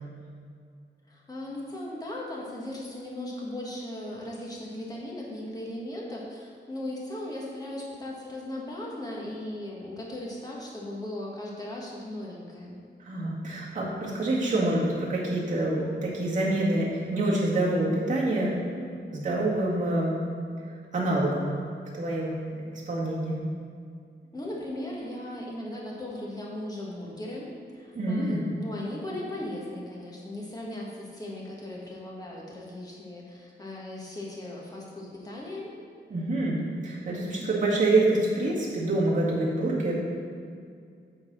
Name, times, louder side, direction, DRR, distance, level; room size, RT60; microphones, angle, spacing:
voice 1, 1.1-12.8 24.3-35.8, left 1 dB, 20° left, -4 dB, 1.5 m, -37 dB
voice 2, 13.0-20.2 20.9-21.5 21.9-22.4 22.9-23.4 28.0-28.4 36.1-39.9, right 2 dB, 40° right, -6 dB, 1.9 m, -26 dB
8.7 x 4.0 x 6.2 m, 2.3 s
wide cardioid pair, 155°, 19 cm